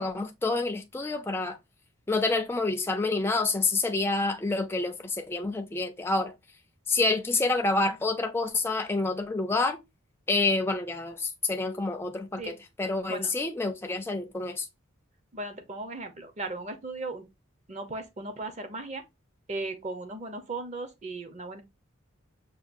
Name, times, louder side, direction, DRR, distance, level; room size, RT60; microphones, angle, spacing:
voice 1, 0.0-1.6 2.1-6.3 6.9-9.8 10.3-14.7, left 3 dB, 10° left, 0.3 m, -28 dB
voice 2, 15.3-17.2 17.7-19.0 19.5-21.6, right 2 dB, 35° right, 0.6 m, -37 dB
5.6 x 2.3 x 2.5 m
head